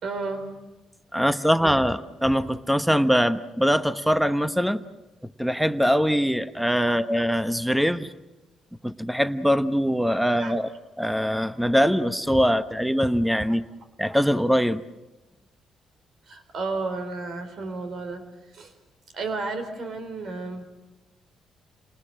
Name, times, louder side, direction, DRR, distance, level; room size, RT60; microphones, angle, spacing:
voice 1, 0.0-0.5 1.6-1.7 6.9-7.0 10.4-10.6 13.4-13.5 16.3-18.2 18.5-18.7 19.1-20.7, right 3 dB, 60° right, 8 dB, 4.4 m, -32 dB
voice 2, 1.1-4.8 5.2-8.1 8.8-10.7 11.0-13.6 14.0-14.8, equal, ahead, 11 dB, 1.1 m, -22 dB
29.0 x 19.5 x 7.5 m, 1.0 s
cardioid pair, 90°, 0 cm